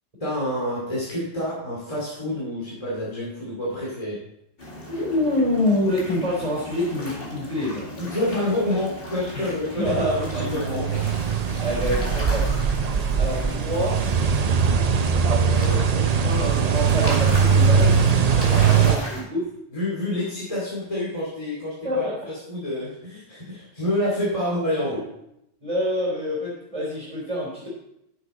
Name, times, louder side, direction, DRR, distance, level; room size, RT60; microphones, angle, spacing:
voice 1, 0.2-4.2 8.0-10.9 18.4-18.9 19.7-25.0, left 1 dB, 25° left, -7 dB, 2.5 m, -28 dB
sound 1, 4.6-19.2, left 1 dB, 45° left, 2.4 m, -37 dB
voice 2, 4.9-7.9 9.3-11.0 11.6-12.5 13.2-14.0 15.1-18.1 18.6-19.5 21.8-22.1 24.9-25.0 25.6-27.7, left 1 dB, 25° right, -6 dB, 3.5 m, -27 dB
sound 2, 9.9-19.0, right 6 dB, 45° right, 0.5 m, -21 dB
10.0 x 7.1 x 4.2 m, 0.80 s
omnidirectional pair, 1.3 m